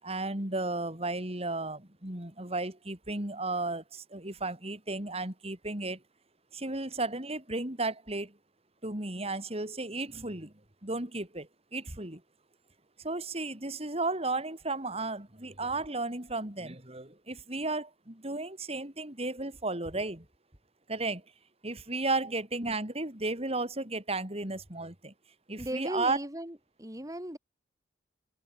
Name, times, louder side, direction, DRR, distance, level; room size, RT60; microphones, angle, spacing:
voice 1, 0.0-6.0 6.5-8.4 8.8-10.5 10.8-12.2 13.0-20.2 20.9-21.2 21.6-25.1 25.5-26.2, right 2 dB, 35° right, 4.4 m, -34 dB
voice 2, 25.6-27.4, right 1 dB, 20° right, 5.5 m, -37 dB
head